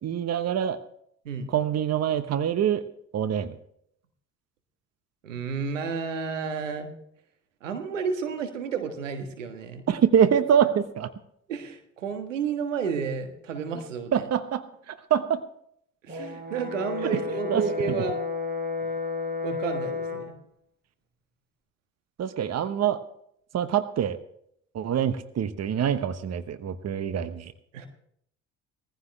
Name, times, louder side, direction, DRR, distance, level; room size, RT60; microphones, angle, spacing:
voice 1, 0.0-0.8 1.5-2.8 3.1-3.5 9.9-11.1 14.1-14.6 14.9-15.4 17.5-17.6 22.2-23.0 23.5-24.2 24.7-27.5, right 9 dB, 45° right, 12 dB, 1.1 m, -25 dB
voice 2, 5.2-6.9 7.6-9.8 11.5-14.2 16.1-18.2 19.4-20.4 27.7-27.9, right 6 dB, 90° right, 6 dB, 1.5 m, -31 dB
Brass instrument, 16.1-20.3, left 4 dB, 25° right, 6.0 m, -32 dB
19.0 x 15.0 x 3.3 m, 0.70 s
hypercardioid pair, 55°, 37 cm